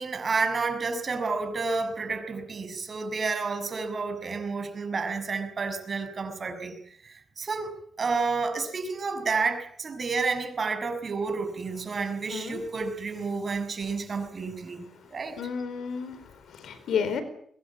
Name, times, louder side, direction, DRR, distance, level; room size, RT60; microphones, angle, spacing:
voice 1, 0.0-6.7 7.0-15.4, right 4 dB, 45° right, 7 dB, 6.4 m, -30 dB
voice 2, 12.3-12.6 14.9-15.0 15.4-17.2, left 6 dB, 85° left, 12 dB, 4.4 m, -32 dB
23.5 x 22.5 x 8.6 m, 0.65 s
cardioid pair, 90°, 0 cm